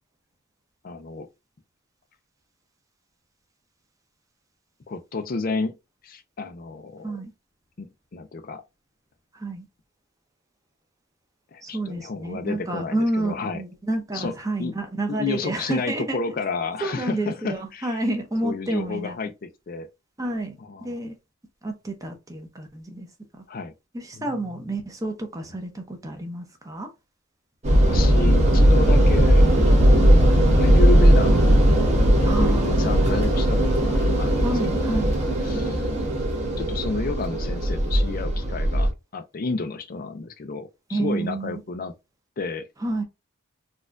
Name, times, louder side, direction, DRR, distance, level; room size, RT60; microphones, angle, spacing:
voice 1, 0.8-1.3 4.9-5.7 6.0-7.2 7.8-8.6 11.5-13.6 14.1-14.3 14.6-14.7 15.1-18.0 18.4-19.9 20.7-20.9 23.5-23.7 24.2-24.3 27.8-30.2 30.6-31.7 32.2-35.1 35.5-35.8 36.6-41.9 42.4-42.7, left 3 dB, 45° left, 0.4 m, -31 dB
voice 2, 9.3-9.7 11.6-16.2 16.8-19.2 20.2-20.5 20.8-21.2 21.6-23.1 23.3-23.4 23.9-26.9 32.3-32.8 34.4-35.1 40.9-41.6 42.8-43.0, right 2 dB, 15° right, 0.7 m, -29 dB
sound 1, 27.6-38.9, equal, 35° right, 1.1 m, -18 dB
4.2 x 2.4 x 2.3 m
head